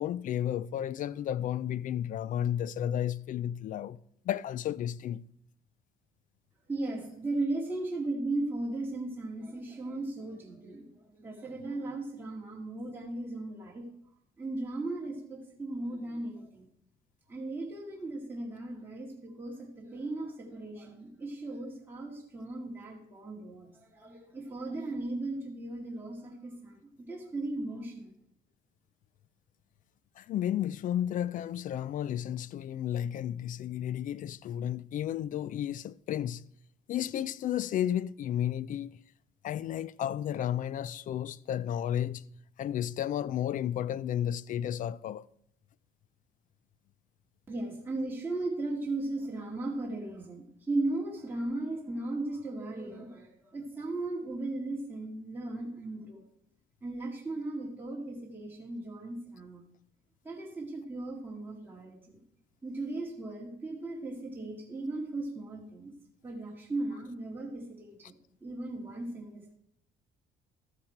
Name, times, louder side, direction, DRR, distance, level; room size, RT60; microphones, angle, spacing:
voice 1, 0.0-4.0 4.3-5.2 30.2-36.4 36.9-38.9 39.4-42.2 42.6-45.3, left 10 dB, 50° left, 0.4 m, -32 dB
voice 2, 6.7-13.9 14.4-16.7 17.3-28.1 47.5-56.2 56.8-59.6 60.2-62.2 62.6-65.9 66.2-68.2 68.4-69.5, right 2 dB, 10° right, 2.1 m, -37 dB
13.0 x 7.8 x 4.4 m
cardioid pair, 110°, 17 cm